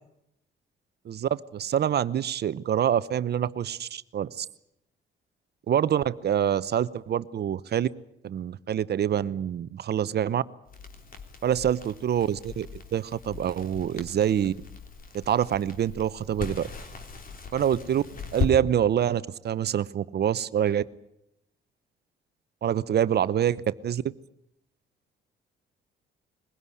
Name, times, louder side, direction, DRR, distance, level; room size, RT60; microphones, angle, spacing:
voice 1, 1.0-4.5 5.7-7.9 8.2-10.4 11.4-14.5 15.1-16.7 17.5-18.0 18.3-20.8 22.6-24.0, right 9 dB, 55° right, 16 dB, 0.8 m, -26 dB
Crackle, 10.7-18.5, left 4 dB, 45° left, 3.4 m, -38 dB
22.0 x 16.5 x 9.9 m, 0.80 s
cardioid pair, 90°, 20 cm